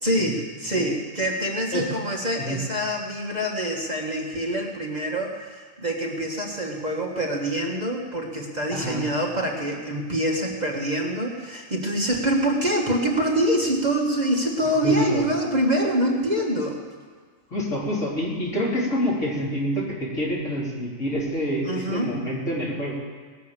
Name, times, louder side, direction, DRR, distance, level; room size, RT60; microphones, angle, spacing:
voice 1, 0.0-16.8 21.6-22.1, right 1 dB, 35° right, -1 dB, 1.6 m, -25 dB
voice 2, 8.7-9.1 14.8-15.3 17.5-22.9, equal, 65° left, -6 dB, 3.9 m, -27 dB
19.5 x 6.6 x 7.4 m, 1.6 s
omnidirectional pair, 1.4 m